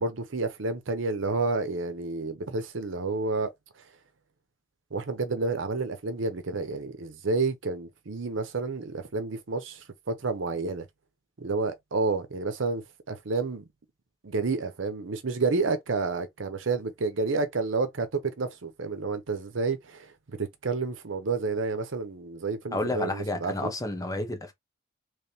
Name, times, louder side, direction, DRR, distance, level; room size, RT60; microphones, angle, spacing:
voice 1, 0.0-3.5 4.9-10.8 11.4-13.6 14.2-23.7, right 3 dB, 75° right, 0.7 m, -30 dB
voice 2, 22.7-24.5, left 1 dB, 20° left, 0.9 m, -30 dB
3.4 x 3.1 x 2.8 m
head